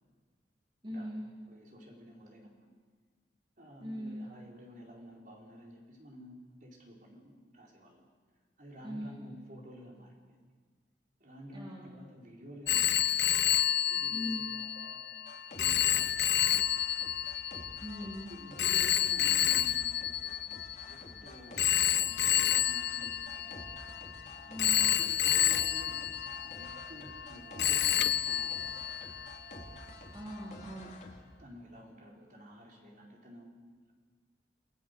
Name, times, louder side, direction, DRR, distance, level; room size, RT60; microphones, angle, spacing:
voice 1, 0.8-1.2 3.8-4.2 8.8-9.2 11.5-11.9 14.1-14.5 17.8-18.3 24.5-24.8 30.1-30.9, equal, 25° right, -3 dB, 3.1 m, -40 dB
voice 2, 1.5-2.7 3.6-8.1 8.6-10.5 11.2-13.3 13.9-14.4 14.8-15.1 15.5-16.8 18.3-23.6 24.6-28.8 31.3-33.9, equal, 45° right, -1 dB, 4.6 m, -51 dB
Telephone, 12.7-21.0 21.6-24.1 24.6-27.3 27.6-29.3, left 11 dB, 60° left, 0.6 m, -29 dB
sound 1, 14.5-31.2, left 1 dB, 40° left, 3.1 m, -50 dB
29.5 x 19.0 x 6.8 m, 1.5 s
head